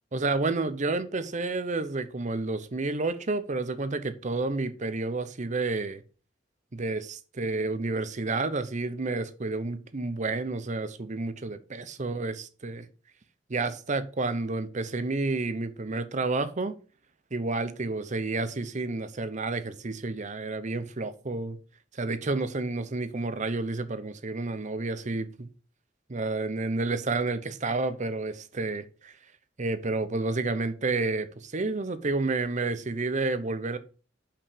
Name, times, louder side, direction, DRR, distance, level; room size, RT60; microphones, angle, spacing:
voice 1, 0.1-6.0 6.7-12.9 13.5-16.8 17.3-21.6 21.9-25.5 26.1-29.1 29.6-33.8, right 3 dB, 40° right, 0.8 m, -30 dB
5.9 x 5.1 x 5.1 m
head